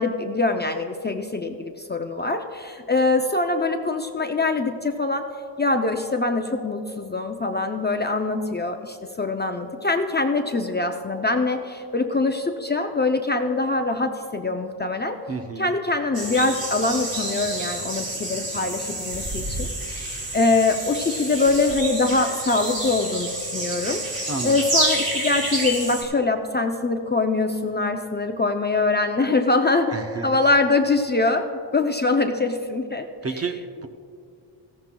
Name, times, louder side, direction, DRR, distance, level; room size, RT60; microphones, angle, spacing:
voice 1, 0.0-5.3 5.6-15.2 15.6-24.0 24.4-29.9 30.2-31.5 31.7-33.1, left 3 dB, 20° left, 4 dB, 0.5 m, -23 dB
voice 2, 15.3-15.7 24.3-24.6 29.9-30.4 33.2-33.9, right 4 dB, 30° right, 6 dB, 0.7 m, -31 dB
sound 1, 16.1-26.0, right 2 dB, 60° right, 3.3 m, -29 dB
17.5 x 15.0 x 2.3 m, 2.4 s
wide cardioid pair, 135°, 47 cm